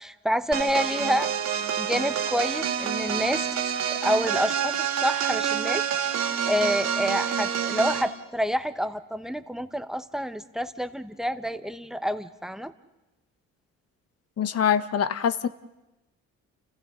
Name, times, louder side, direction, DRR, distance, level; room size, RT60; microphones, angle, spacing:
voice 1, 0.0-1.3 1.8-3.5 3.9-5.8 6.5-12.7, equal, ahead, 10 dB, 1.2 m, -28 dB
sound 1, 0.5-8.1, right 8 dB, 65° right, 2.6 m, -27 dB
voice 2, 14.4-15.5, left 8 dB, 55° left, 12 dB, 1.1 m, -24 dB
30.0 x 30.0 x 4.0 m, 1.0 s
cardioid pair, 90°, 30 cm